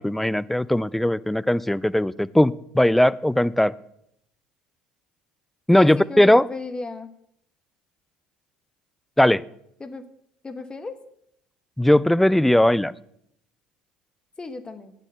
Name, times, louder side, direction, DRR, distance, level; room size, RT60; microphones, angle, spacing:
voice 1, 0.0-3.7 5.7-6.4 9.2-9.4 11.8-12.9, left 1 dB, 5° left, 16 dB, 0.5 m, -19 dB
voice 2, 5.7-7.1 9.8-10.1 10.4-11.0 14.4-14.9, left 3 dB, 20° left, 9 dB, 1.3 m, -34 dB
14.0 x 9.2 x 6.8 m, 0.73 s
figure-of-eight pair, 60°, 4 cm